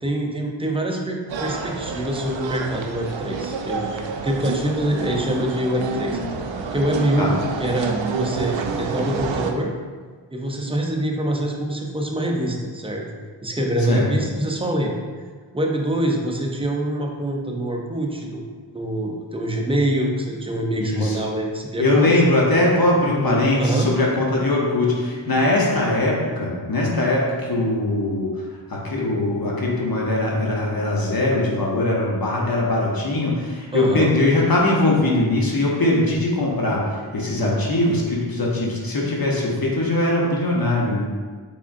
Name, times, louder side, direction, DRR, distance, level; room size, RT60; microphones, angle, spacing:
voice 1, 0.0-6.2 6.7-9.7 10.3-13.1 13.4-14.9 15.5-18.4 18.7-22.3 23.1-23.9 33.7-34.1, right 1 dB, 10° right, 0 dB, 0.5 m, -25 dB
Street Ambeince with street musicians in French Quarter, 1.3-9.5, right 4 dB, 70° right, 0.5 m, -28 dB
voice 2, 20.8-21.2 21.8-41.1, left 2 dB, 50° left, -3 dB, 0.9 m, -21 dB
3.5 x 3.5 x 2.5 m, 1.5 s
cardioid pair, 55°, 47 cm